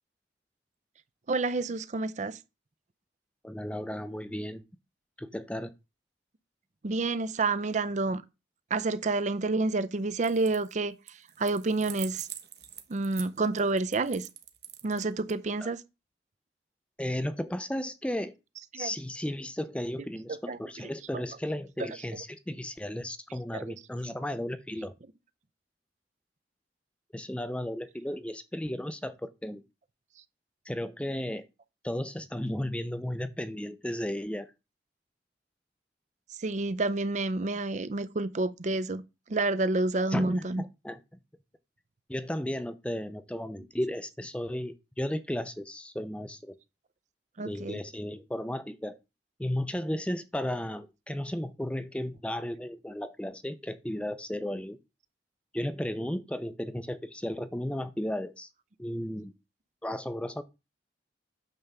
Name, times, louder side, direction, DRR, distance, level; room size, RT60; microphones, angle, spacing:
voice 1, 1.3-2.4 6.8-8.2 8.7-12.3 12.9-14.3 14.8-15.8 18.7-18.9 20.3-20.6 21.8-21.9 23.5-23.6 36.4-39.0 39.3-40.6 47.4-47.8, right 3 dB, 40° right, 0.5 m, -29 dB
voice 2, 3.4-4.6 5.2-5.7 15.6-15.7 17.0-18.3 18.7-24.9 27.1-29.6 30.7-31.5 31.8-34.5 40.1-41.0 42.1-46.6 47.4-49.0 49.4-54.8 55.5-58.5 58.8-59.3 59.8-60.4, left 1 dB, 5° left, 0.5 m, -34 dB
sound 1, 10.2-10.7 11.1-15.3, right 11 dB, 60° right, 1.1 m, -44 dB
9.0 x 3.5 x 6.7 m
head